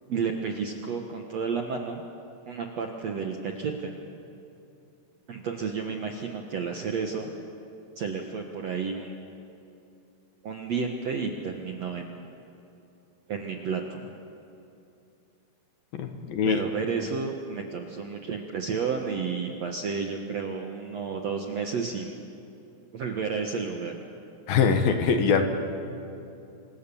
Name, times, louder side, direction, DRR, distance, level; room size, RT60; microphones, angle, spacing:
voice 1, 0.1-2.0 2.5-4.0 5.3-7.3 8.0-9.2 10.4-12.2 13.3-14.1 16.5-22.2 22.9-23.9, right 5 dB, 60° right, 2 dB, 1.8 m, -31 dB
voice 2, 15.9-16.6 24.5-25.4, left 6 dB, 65° left, 6 dB, 3.0 m, -23 dB
27.5 x 25.5 x 7.1 m, 2.8 s
omnidirectional pair, 4.7 m